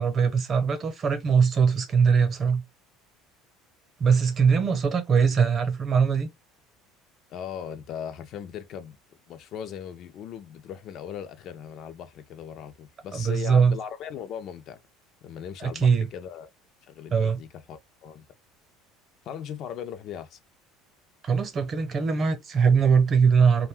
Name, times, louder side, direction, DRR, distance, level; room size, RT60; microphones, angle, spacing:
voice 1, 0.0-2.6 4.0-6.3 13.1-13.8 15.6-16.1 17.1-17.4 21.2-23.7, right 6 dB, 35° right, 0.8 m, -21 dB
voice 2, 7.3-9.0 9.3-14.8 15.2-16.5 16.8-18.2 19.2-20.4, left 8 dB, 55° left, 0.5 m, -38 dB
2.5 x 2.2 x 3.5 m
supercardioid pair, 115°, 0 cm